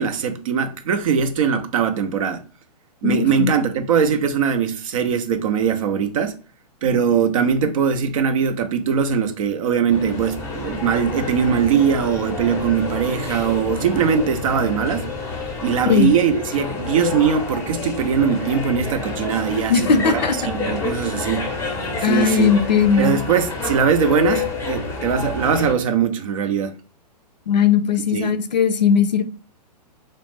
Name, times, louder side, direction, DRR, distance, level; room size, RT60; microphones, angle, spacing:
voice 1, 0.0-2.4 3.0-6.4 6.8-15.1 15.6-21.6 22.0-22.5 23.0-26.7 28.1-28.3, right 7 dB, 55° right, 0.4 m, -21 dB
voice 2, 3.0-3.5 15.9-16.1 19.7-20.4 22.0-23.2 27.5-29.2, left 6 dB, 90° left, 0.4 m, -18 dB
sound 1, 9.9-25.7, left 4 dB, 10° left, 0.6 m, -29 dB
2.3 x 2.0 x 3.4 m
hypercardioid pair, 120°, 21 cm